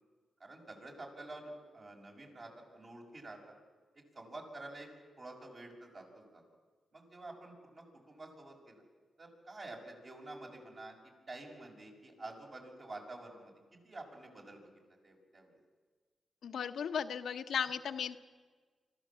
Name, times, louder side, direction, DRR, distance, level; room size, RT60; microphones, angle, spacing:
voice 1, 0.4-3.5 3.9-4.9 5.2-6.4 6.9-8.8 9.2-10.9 11.3-14.7 15.0-15.6, right 2 dB, 50° right, 0 dB, 6.3 m, -49 dB
voice 2, 16.4-18.2, left 7 dB, 75° left, 8 dB, 0.9 m, -36 dB
25.0 x 14.5 x 7.5 m, 1.4 s
supercardioid pair, 50°, 0 cm